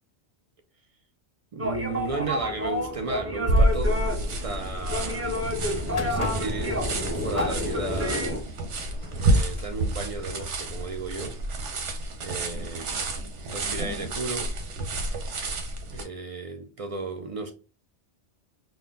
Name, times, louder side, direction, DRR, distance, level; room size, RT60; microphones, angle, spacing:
voice 1, 1.5-8.3 9.1-11.4 12.2-13.1 13.4-14.6 15.9-17.5, right 3 dB, 65° right, 0.3 m, -35 dB
sound 1, 1.6-8.4, left 1 dB, 15° right, 0.6 m, -30 dB
sound 2, 3.5-16.0, right 1 dB, 80° right, 1.1 m, -29 dB
sound 3, 5.7-11.6, left 2 dB, 35° left, 0.6 m, -41 dB
3.8 x 2.2 x 3.8 m
omnidirectional pair, 1.2 m